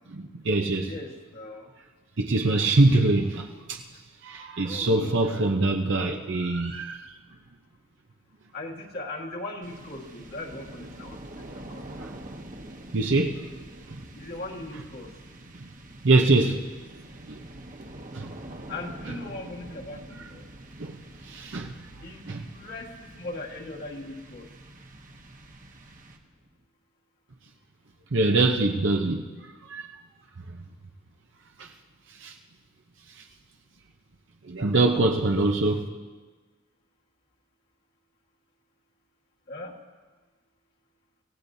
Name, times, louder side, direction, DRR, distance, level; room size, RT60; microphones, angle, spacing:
voice 1, 0.1-0.9 2.2-3.8 4.2-7.1 12.9-13.4 13.9-14.0 16.0-16.6 17.3-17.4 18.1-18.3 20.8-20.9 21.2-21.7 22.3-22.5 28.1-29.2 29.7-29.9 31.6-31.7 32.2-32.3 34.5-35.9, right 2 dB, 60° right, 3 dB, 0.8 m, -23 dB
voice 2, 0.8-1.7 4.6-5.4 8.5-11.8 14.2-15.1 18.7-20.5 22.0-22.3 22.5-24.5 39.5-39.7, left 2 dB, 50° left, -1 dB, 1.6 m, -39 dB
sound 1, 9.6-26.6, right 1 dB, 40° right, 1.2 m, -45 dB
26.5 x 16.5 x 2.7 m, 1.4 s
head